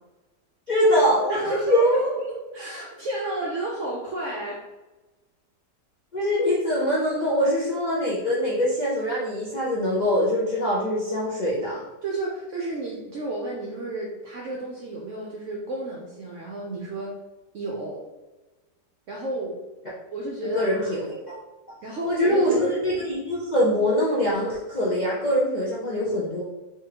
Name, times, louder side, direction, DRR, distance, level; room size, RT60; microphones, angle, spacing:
voice 1, 0.7-2.0 6.1-11.8 20.5-21.3 22.0-26.4, equal, 80° left, -7 dB, 0.4 m, -23 dB
voice 2, 1.3-4.6 12.0-17.2 17.5-18.0 19.1-19.6 20.1-20.9 21.8-22.7, right 1 dB, 65° right, -2 dB, 0.7 m, -32 dB
3.7 x 3.0 x 2.8 m, 1.1 s
omnidirectional pair, 1.8 m